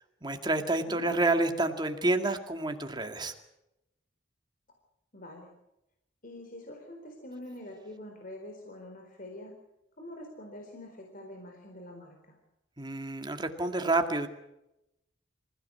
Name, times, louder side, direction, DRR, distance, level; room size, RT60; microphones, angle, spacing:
voice 1, 0.2-3.3 12.8-14.3, right 2 dB, 25° right, 5 dB, 2.3 m, -29 dB
voice 2, 5.1-5.5 6.2-9.5 10.0-12.4, left 1 dB, 45° left, 2 dB, 4.2 m, -45 dB
27.0 x 16.5 x 8.7 m, 0.88 s
head